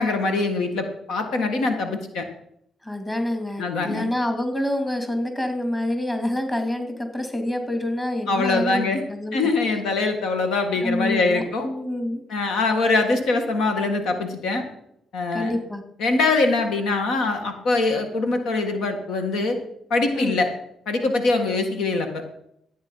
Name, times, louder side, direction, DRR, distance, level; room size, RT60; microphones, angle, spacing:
voice 1, 0.0-2.3 3.6-4.1 8.3-9.0 9.3-11.7 12.3-14.6 15.1-15.5 16.0-19.6 19.9-20.5 20.9-22.2, left 3 dB, 80° left, 6 dB, 1.8 m, -23 dB
voice 2, 2.8-9.5 10.8-12.2 15.3-15.8 20.1-20.4, left 1 dB, 15° left, 6 dB, 2.6 m, -27 dB
13.5 x 8.6 x 5.6 m, 0.75 s
cardioid pair, 90°, 0 cm